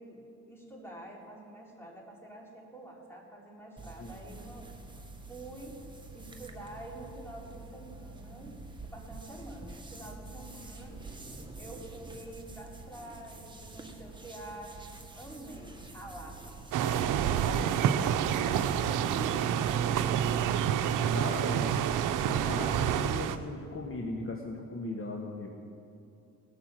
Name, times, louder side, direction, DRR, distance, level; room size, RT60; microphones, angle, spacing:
voice 1, 0.0-4.7 5.3-5.8 6.1-8.6 8.8-11.0 11.6-18.6 19.1-20.2 20.8-21.8, right 1 dB, 10° left, -3 dB, 3.5 m, -47 dB
sound 1, 3.8-21.6, right 2 dB, 15° right, 1.4 m, -47 dB
voice 2, 4.0-4.4 21.0-21.7 22.3-25.5, left 2 dB, 45° left, 0 dB, 1.4 m, -38 dB
sound 2, 16.7-23.4, right 9 dB, 85° right, 0.6 m, -28 dB
19.0 x 6.3 x 7.5 m, 2.6 s
cardioid pair, 85°, 31 cm